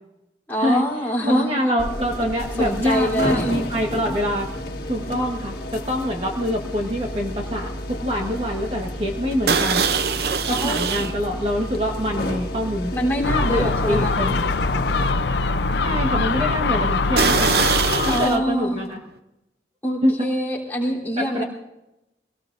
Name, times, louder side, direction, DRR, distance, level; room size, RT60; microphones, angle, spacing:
voice 1, 0.5-1.5 2.6-3.5 10.5-11.0 12.9-14.1 18.0-18.9 19.8-21.4, equal, 10° left, -3 dB, 3.4 m, -25 dB
voice 2, 1.2-4.5 4.9-7.7 8.0-9.8 10.5-12.9 13.5-14.3 15.8-17.5 18.0-19.0 20.0-20.1 21.2-21.4, equal, 30° right, 0 dB, 1.4 m, -25 dB
sound 1, 1.8-15.1, left 1 dB, 55° left, 1.8 m, -31 dB
sound 2, 2.3-2.6 2.8-7.4 7.7-8.0 8.4-8.5 9.5-11.2 11.7-11.8 12.5-12.6 13.1-13.2 17.2-18.4, right 5 dB, 65° right, 0.7 m, -24 dB
Gull seagull, 13.2-18.3, left 3 dB, 80° left, 0.6 m, -22 dB
24.0 x 18.0 x 2.6 m, 0.93 s
head